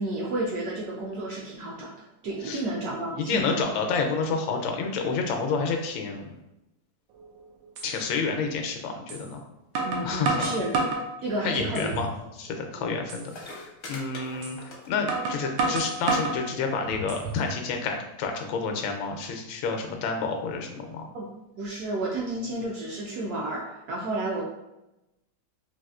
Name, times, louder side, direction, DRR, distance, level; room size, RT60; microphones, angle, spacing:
voice 1, 0.0-1.9 2.2-3.7 9.8-10.7 11.2-12.0 12.8-13.0 21.1-21.3 21.6-24.4, right 2 dB, 70° right, -4 dB, 0.9 m, -31 dB
voice 2, 3.2-6.4 7.8-9.4 10.0-10.6 11.4-12.1 12.4-14.6 14.9-21.1, left 4 dB, 85° left, 3 dB, 1.3 m, -29 dB
sound 1, 7.2-7.3 7.8-7.9 9.1-9.2 9.7-11.1 11.6-12.1 12.5-12.6 13.1-13.3 14.4-14.6 15.1-16.4 16.9-17.5, right 3 dB, 90° right, 1.4 m, -28 dB
sound 2, 13.0-13.1 13.2-15.2 15.4-15.7 16.1-16.2 16.5-17.0 17.8-17.9, left 2 dB, 60° left, 0.7 m, -42 dB
4.1 x 2.4 x 2.3 m, 0.92 s
omnidirectional pair, 2.1 m